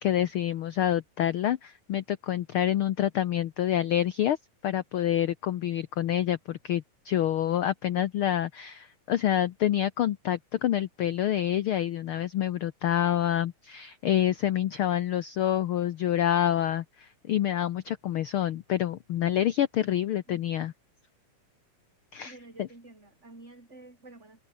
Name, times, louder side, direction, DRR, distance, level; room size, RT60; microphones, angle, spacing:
voice 1, 0.0-4.4 4.6-20.7 22.1-22.3, left 11 dB, 85° left, 1.1 m, -27 dB
voice 2, 22.2-24.4, right 2 dB, 20° right, 5.2 m, -50 dB
omnidirectional pair, 3.6 m